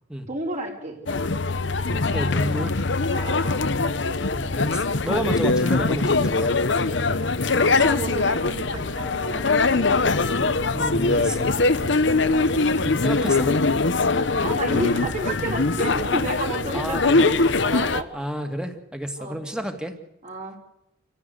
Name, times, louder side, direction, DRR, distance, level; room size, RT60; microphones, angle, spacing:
voice 1, 0.3-1.0 3.1-3.7 7.6-10.0 11.8-12.3 14.4-17.4 17.6-18.1 19.2-19.4 20.2-20.6, right 2 dB, 40° right, 0 dB, 4.0 m, -31 dB
sound 1, 1.1-18.0, left 3 dB, 65° left, 1.0 m, -22 dB
voice 2, 1.9-2.8 4.3-6.5 10.7-11.5 12.8-13.5 16.7-17.3 18.1-19.9, equal, 5° right, 6 dB, 2.1 m, -30 dB
28.0 x 15.0 x 8.1 m, 0.85 s
head